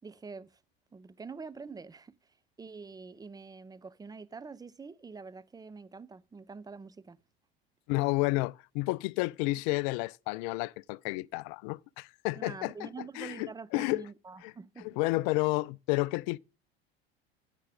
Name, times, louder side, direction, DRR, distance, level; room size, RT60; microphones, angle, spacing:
voice 1, 0.0-0.6 0.9-2.2 2.6-7.2 12.4-15.0, right 4 dB, 10° right, 0.5 m, -46 dB
voice 2, 7.9-12.9 13.2-14.1 14.4-14.5 14.8-16.4, left 22 dB, 50° left, 0.4 m, -31 dB
11.0 x 8.3 x 3.6 m
figure-of-eight pair, 75°, 31 cm